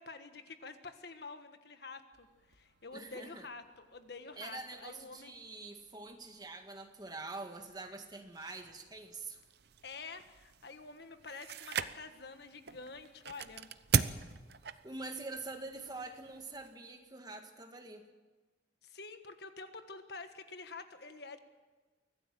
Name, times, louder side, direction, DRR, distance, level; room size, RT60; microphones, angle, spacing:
voice 1, 0.0-5.3 9.8-13.7 18.8-21.4, left 4 dB, 60° left, 8 dB, 1.5 m, -48 dB
sound 1, 2.1-16.6, right 2 dB, 85° right, 2.8 m, -75 dB
voice 2, 2.9-3.5 4.4-9.4 14.8-18.0, right 3 dB, 20° right, 5 dB, 1.9 m, -45 dB
sound 2, 8.3-16.7, right 6 dB, 60° right, 0.7 m, -39 dB
24.0 x 16.0 x 7.7 m, 1.3 s
head